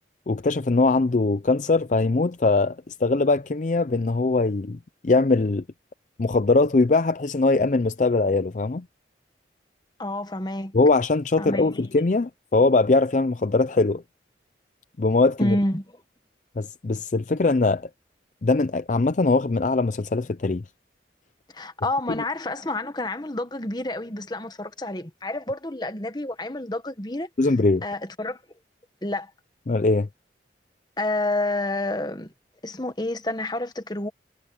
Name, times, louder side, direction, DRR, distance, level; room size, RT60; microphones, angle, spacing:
voice 1, 0.3-5.6 6.2-8.8 10.7-14.0 15.0-15.6 16.6-17.9 18.4-20.6 27.4-27.8 29.7-30.1, left 3 dB, 40° left, 0.5 m, -21 dB
voice 2, 10.0-10.7 11.4-11.8 15.4-15.8 21.5-27.3 27.8-28.4 29.0-29.3 31.0-32.3 32.6-34.1, left 2 dB, 25° left, 1.3 m, -29 dB
head